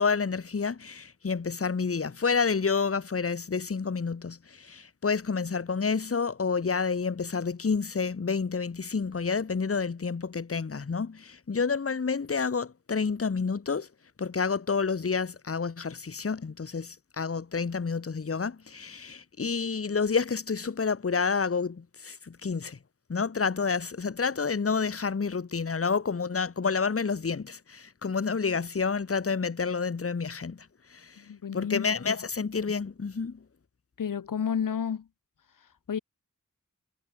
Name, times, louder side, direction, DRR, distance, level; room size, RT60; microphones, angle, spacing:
voice 1, 0.0-13.9 14.2-22.8 23.1-30.6 30.9-31.2 31.5-33.4, left 5 dB, 45° left, 0.8 m, -29 dB
voice 2, 31.2-31.9 34.0-35.1 35.9-36.0, left 7 dB, 75° left, 0.7 m, -30 dB
wide cardioid pair, 65°, 33 cm